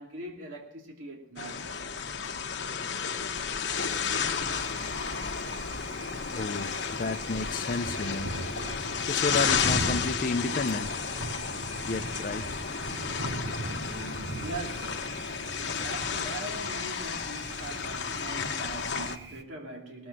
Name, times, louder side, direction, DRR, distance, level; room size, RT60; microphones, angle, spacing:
voice 1, 0.0-1.7 13.7-15.0 15.8-20.1, right 2 dB, 90° right, 2.7 m, -41 dB
sound 1, 1.4-19.2, left 6 dB, 60° left, 1.1 m, -32 dB
Thunder, 3.8-19.4, right 2 dB, 55° right, 1.0 m, -40 dB
voice 2, 6.3-6.7 7.0-8.3 9.1-10.9 11.9-12.6, left 3 dB, 45° left, 0.5 m, -31 dB
19.0 x 7.8 x 7.5 m
head